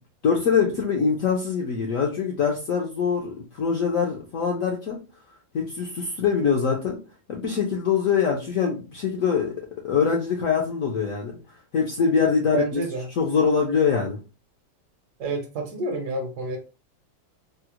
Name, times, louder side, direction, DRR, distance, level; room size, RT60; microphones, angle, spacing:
voice 1, 0.2-5.0 5.5-7.0 7.3-9.5 9.8-11.3 11.7-12.8 13.2-14.2, left 6 dB, 70° left, 0 dB, 0.8 m, -23 dB
voice 2, 12.5-13.1 15.2-16.6, right 2 dB, 65° right, 1 dB, 1.2 m, -29 dB
3.7 x 2.0 x 2.9 m, 0.32 s
omnidirectional pair, 2.1 m